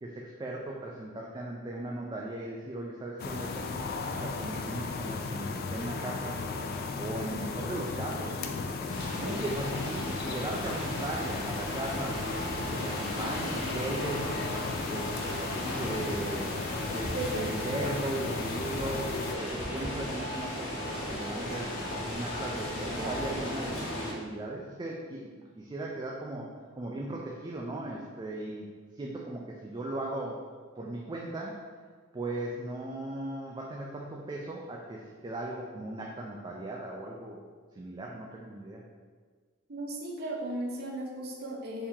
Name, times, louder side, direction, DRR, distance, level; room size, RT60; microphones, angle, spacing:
voice 1, 0.0-3.9 4.2-6.4 7.0-8.4 9.1-12.2 12.6-14.3 14.8-16.6 16.9-21.7 22.1-25.3 25.6-26.5 26.8-28.7 29.0-30.4 30.8-31.6 32.1-37.4 37.8-38.8, right 2 dB, 20° right, -2 dB, 0.3 m, -37 dB
sound 1, 3.2-19.4, left 4 dB, 50° left, 0.3 m, -36 dB
St Pancrass station int atmos, 8.9-24.1, left 1 dB, 90° left, 1.2 m, -36 dB
voice 2, 17.1-17.5 39.7-41.9, right 1 dB, 55° right, 0 dB, 0.7 m, -36 dB
4.5 x 2.8 x 3.6 m, 1.6 s
head